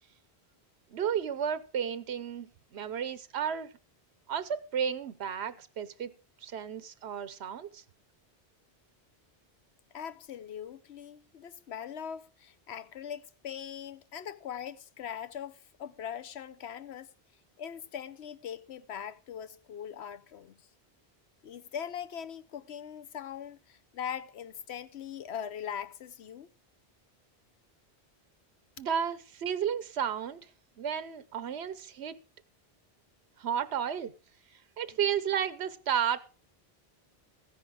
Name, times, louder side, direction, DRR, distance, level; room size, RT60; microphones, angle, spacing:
voice 1, 0.9-3.7 4.3-6.1 6.4-7.8 28.8-30.5 30.8-32.2 33.4-34.1 34.8-36.2, right 8 dB, 80° right, 1.1 m, -33 dB
voice 2, 9.9-17.1 17.6-20.7 21.4-26.5, left 8 dB, 85° left, 1.1 m, -41 dB
14.5 x 10.0 x 4.8 m
omnidirectional pair, 1.1 m